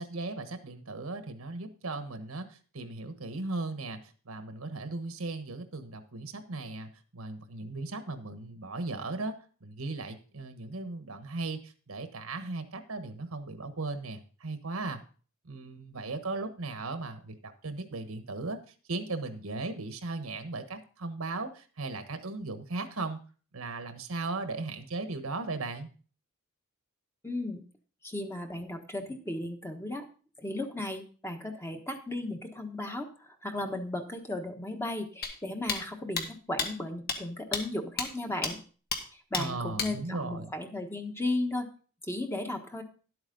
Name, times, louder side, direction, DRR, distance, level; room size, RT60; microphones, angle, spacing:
voice 1, 0.0-9.3 9.6-15.0 15.4-18.6 18.9-23.2 23.5-25.9 39.4-40.5, right 3 dB, 80° right, 9 dB, 1.3 m, -37 dB
voice 2, 27.2-27.6 28.0-30.1 30.4-38.6 39.1-41.7 42.0-42.8, left 2 dB, 10° left, 4 dB, 1.2 m, -35 dB
sound 1, 35.2-35.3 35.7-35.8 36.2-36.3 36.6-36.7 37.1-37.2 37.5-37.6 38.0-38.1 38.4-38.5 38.9-39.0 39.3-39.4 39.8-39.9, left 5 dB, 45° left, 1.5 m, -30 dB
11.5 x 8.1 x 4.0 m, 0.39 s
head